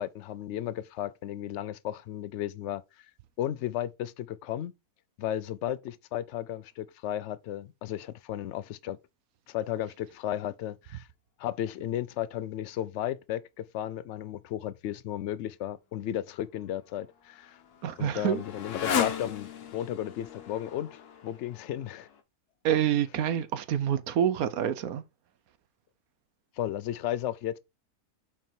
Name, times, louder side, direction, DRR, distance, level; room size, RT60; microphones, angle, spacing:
voice 1, 0.0-2.8 3.4-4.7 5.2-9.0 9.5-11.1 11.4-17.6 18.0-22.1 26.6-27.6, left 12 dB, 70° left, 0.7 m, -34 dB
Motorcycle, 16.8-22.2, left 8 dB, 85° left, 1.5 m, -36 dB
voice 2, 17.8-18.4 22.6-25.0, right 9 dB, 70° right, 1.1 m, -27 dB
5.9 x 4.6 x 4.4 m
omnidirectional pair, 1.6 m